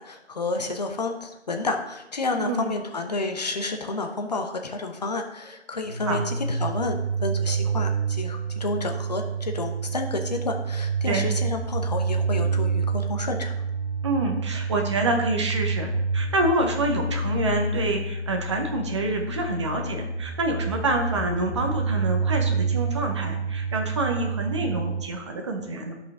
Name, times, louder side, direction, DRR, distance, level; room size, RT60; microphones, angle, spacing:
voice 1, 0.0-6.9 7.2-13.5, left 3 dB, 35° left, 4 dB, 0.8 m, -30 dB
voice 2, 2.3-2.7 6.1-6.2 11.0-11.3 14.0-25.9, right 2 dB, 25° right, 2 dB, 0.8 m, -27 dB
sound 1, 5.8-25.0, right 4 dB, 55° right, 1.8 m, -28 dB
12.0 x 5.4 x 3.6 m, 0.93 s
figure-of-eight pair, 155°, 34 cm